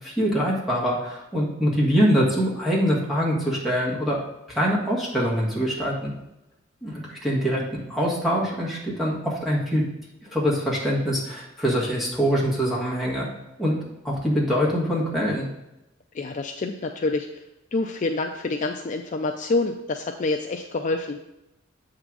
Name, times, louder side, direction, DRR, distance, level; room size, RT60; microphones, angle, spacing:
voice 1, 0.0-4.2 4.5-6.1 6.8-9.8 10.3-13.2 13.6-13.7 14.0-15.4, equal, ahead, -5 dB, 1.7 m, -24 dB
voice 2, 16.1-17.3 17.7-21.2, left 3 dB, 40° left, 4 dB, 0.4 m, -27 dB
8.0 x 3.8 x 6.0 m, 0.93 s
head